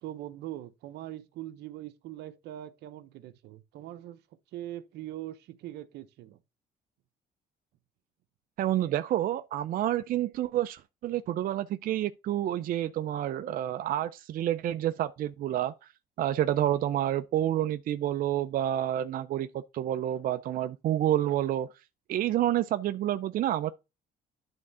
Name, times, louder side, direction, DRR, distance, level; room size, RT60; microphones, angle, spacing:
voice 1, 0.0-4.2 4.5-6.4, right 13 dB, 80° right, 0.9 m, -42 dB
voice 2, 8.6-15.7 16.2-21.7 22.1-23.7, right 12 dB, 55° right, 0.5 m, -29 dB
11.0 x 3.6 x 5.5 m
cardioid pair, 110°, 17 cm